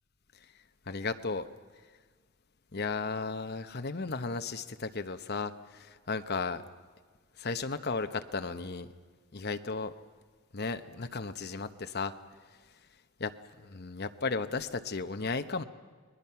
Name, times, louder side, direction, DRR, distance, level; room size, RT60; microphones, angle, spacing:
voice 1, 0.9-1.5 2.7-6.6 7.4-8.9 9.3-9.9 10.5-12.1 13.2-13.3 13.6-15.6, left 4 dB, 50° left, 9 dB, 1.0 m, -34 dB
30.0 x 21.0 x 5.8 m, 1.5 s
head